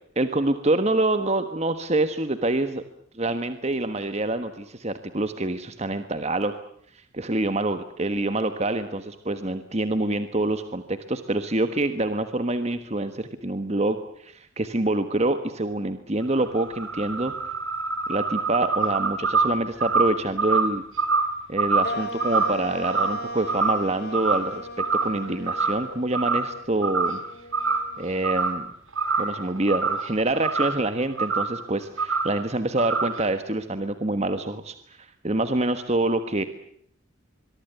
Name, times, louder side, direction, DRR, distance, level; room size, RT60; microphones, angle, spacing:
voice 1, 0.2-2.8 3.1-6.5 6.9-17.3 18.1-20.8 21.5-27.2 28.0-28.7 29.2-36.4, right 2 dB, 30° right, 10 dB, 1.3 m, -26 dB
sound 1, 16.2-23.9 24.1-24.5 24.8-25.9 26.1-26.5 26.8-27.3 27.5-28.6 28.9-30.8 31.2-31.6 32.0-32.4 32.8-33.3, right 4 dB, 70° right, 3.9 m, -25 dB
sound 2, 21.8-28.5, left 1 dB, 50° left, 3.3 m, -37 dB
24.5 x 23.0 x 8.1 m, 0.67 s
head